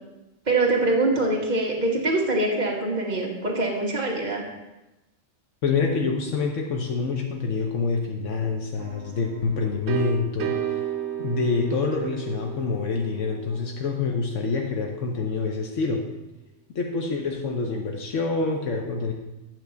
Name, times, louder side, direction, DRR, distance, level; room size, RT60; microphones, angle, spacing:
voice 1, 0.5-4.4, right 2 dB, 35° right, -2 dB, 1.6 m, -24 dB
voice 2, 5.6-10.6 11.2-16.0 16.7-19.1, left 4 dB, 80° left, 2 dB, 1.2 m, -26 dB
sound 1, 8.8-14.5, right 10 dB, 80° right, 0.9 m, -34 dB
9.0 x 3.8 x 6.9 m, 1.0 s
omnidirectional pair, 1.3 m